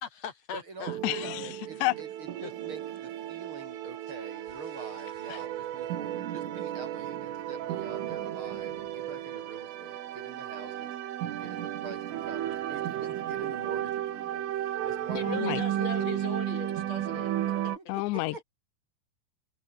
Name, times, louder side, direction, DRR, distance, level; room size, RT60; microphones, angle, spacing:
voice 1, 0.0-1.5 1.8-1.9 2.4-2.5 15.1-17.3, left 7 dB, 45° left, 2.4 m, -40 dB
voice 2, 0.5-11.0 11.4-15.9 17.7-18.4, right 3 dB, 25° right, 3.8 m, -46 dB
sound 1, 0.9-17.8, right 12 dB, 75° right, 4.6 m, -34 dB
voice 3, 1.0-1.5 1.8-1.9 5.3-5.4 15.3-15.6 17.9-18.4, left 21 dB, 85° left, 2.5 m, -30 dB
omnidirectional pair, 5.9 m